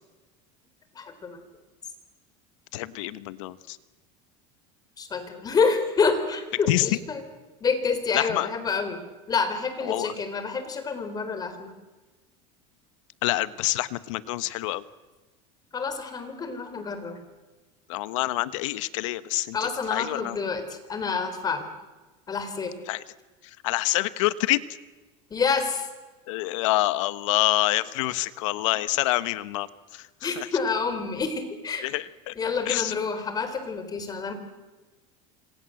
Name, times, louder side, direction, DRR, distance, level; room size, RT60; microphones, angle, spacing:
voice 1, 1.0-1.4 5.0-7.2 7.6-11.7 15.7-17.2 19.5-21.7 22.3-22.8 25.3-25.9 30.2-31.9 32.4-34.3, left 5 dB, 25° left, 10 dB, 4.0 m, -28 dB
voice 2, 2.7-3.8 6.7-7.0 8.1-8.5 9.8-10.1 13.2-14.8 17.9-20.4 22.9-23.0 23.4-24.6 26.3-29.7 29.9-30.5 31.8-32.3 32.7-32.9, left 18 dB, 85° left, 16 dB, 1.3 m, -27 dB
27.0 x 26.5 x 7.9 m, 1.2 s
supercardioid pair, 135°, 16 cm